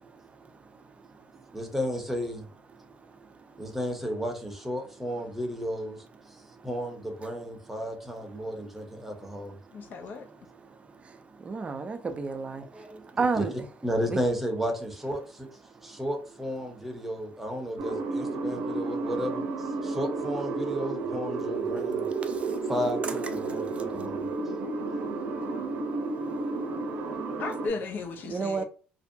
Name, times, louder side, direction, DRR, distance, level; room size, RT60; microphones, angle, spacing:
voice 1, 1.5-2.4 3.6-6.0 6.6-9.6 12.6-15.5 15.8-19.5 19.8-22.1 22.7-24.3, equal, 5° right, 0.8 m, -33 dB
voice 2, 9.7-10.3 27.4-28.6, left 3 dB, 55° left, 0.5 m, -35 dB
voice 3, 11.5-12.6 13.2-13.5 14.1-14.2 28.3-28.6, right 4 dB, 30° right, 0.5 m, -29 dB
sound 1, 17.8-27.7, right 3 dB, 75° right, 0.6 m, -32 dB
2.6 x 2.1 x 2.6 m
supercardioid pair, 85°, 4 cm